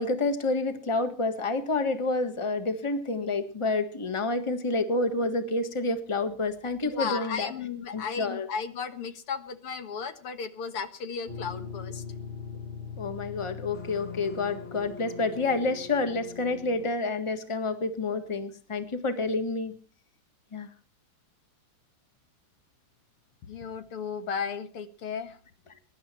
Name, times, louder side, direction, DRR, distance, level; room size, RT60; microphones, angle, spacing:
voice 1, 0.0-7.5 7.9-8.5 13.0-19.8 20.5-20.7, left 3 dB, 15° left, 8 dB, 1.5 m, -29 dB
voice 2, 6.8-12.0 23.4-25.4, left 6 dB, 90° left, 9 dB, 2.5 m, -35 dB
sound 1, 11.3-16.9, left 5 dB, 35° left, 1.4 m, -40 dB
22.5 x 11.5 x 4.4 m, 0.40 s
omnidirectional pair, 2.4 m